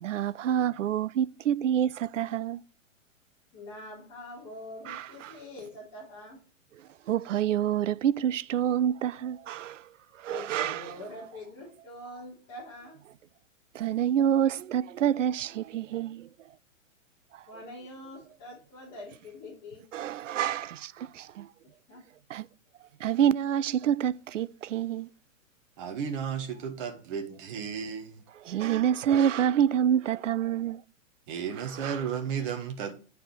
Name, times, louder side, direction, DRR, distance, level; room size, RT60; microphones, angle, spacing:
voice 1, 0.0-2.6 4.9-5.3 7.1-9.9 10.2-10.9 13.7-16.3 19.9-21.5 22.3-22.5 23.0-25.1 28.4-30.8 31.8-32.0, right 10 dB, 65° right, 0.5 m, -27 dB
voice 2, 3.5-6.4 10.3-13.0 17.5-19.8 21.9-22.0, left 1 dB, 35° left, 3.5 m, -44 dB
voice 3, 25.8-28.2 31.3-32.9, right 7 dB, 40° right, 1.2 m, -34 dB
9.1 x 5.0 x 4.7 m
figure-of-eight pair, 110°, 40 cm